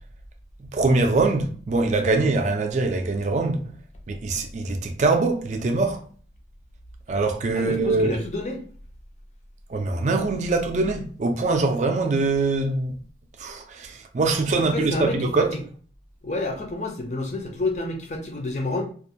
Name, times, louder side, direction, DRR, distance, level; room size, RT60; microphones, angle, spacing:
voice 1, 0.7-3.7 4.1-6.0 7.1-8.2 9.7-13.0 13.4-15.5, right 3 dB, 40° right, 0.3 m, -23 dB
voice 2, 7.5-8.6 14.7-15.6 16.2-18.8, left 2 dB, 40° left, 0.5 m, -29 dB
2.4 x 2.1 x 2.6 m
head